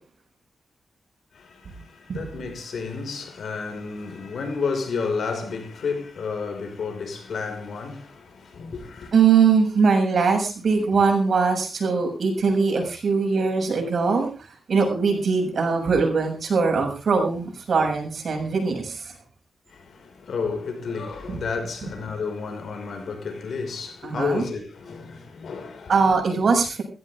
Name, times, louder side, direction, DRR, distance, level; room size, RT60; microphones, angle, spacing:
voice 1, 1.3-9.1 19.7-26.0, left 5 dB, 75° left, 5.6 m, -31 dB
voice 2, 9.1-14.3 14.7-19.1 21.3-21.4 21.8-21.9 24.0-24.4 25.9-26.8, right 5 dB, 65° right, 7.3 m, -21 dB
18.5 x 15.5 x 3.7 m
cardioid pair, 90°, 0 cm